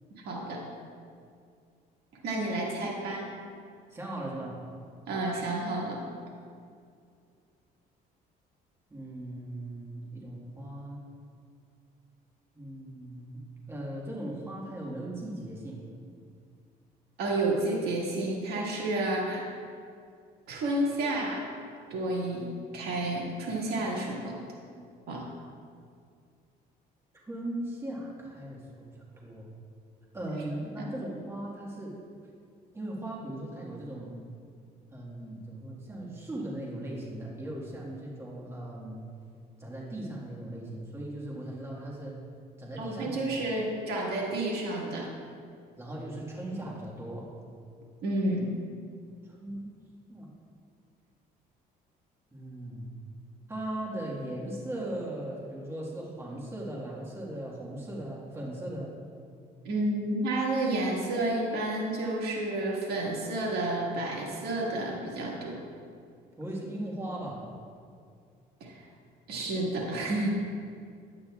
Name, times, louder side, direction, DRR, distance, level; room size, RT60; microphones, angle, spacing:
voice 1, 0.2-0.6 2.2-3.3 5.1-6.0 17.2-19.6 20.5-21.4 21.9-24.4 25.1-25.3 30.8-30.9 42.8-45.1 48.0-48.5 59.6-65.6 68.6-68.8 69.3-70.3, right 2 dB, 70° right, -3 dB, 1.7 m, -30 dB
voice 2, 3.9-4.6 8.9-11.0 12.5-13.4 13.7-15.8 27.3-29.5 30.1-31.9 32.7-34.1 34.9-39.0 39.6-42.2 42.6-43.3 45.8-47.3 49.2-49.7 50.1-50.3 52.3-53.1 53.5-59.0 66.4-67.4, right 1 dB, 15° right, -4 dB, 1.7 m, -38 dB
10.0 x 8.6 x 2.4 m, 2.3 s
cardioid pair, 110°, 17 cm